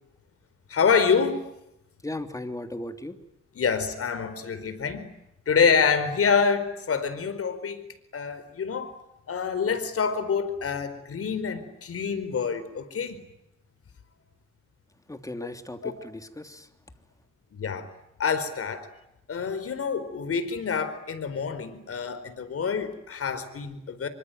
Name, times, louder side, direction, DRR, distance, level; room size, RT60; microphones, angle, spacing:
voice 1, 0.7-1.5 3.6-5.1 5.5-8.9 9.3-13.2 15.8-15.9 17.5-17.9 18.2-18.9 19.3-24.1, left 6 dB, 50° left, 11 dB, 4.6 m, -26 dB
voice 2, 2.0-3.2 15.1-16.7, left 1 dB, 10° left, 7 dB, 3.1 m, -37 dB
26.0 x 24.0 x 9.3 m, 0.85 s
cardioid pair, 90°, 30 cm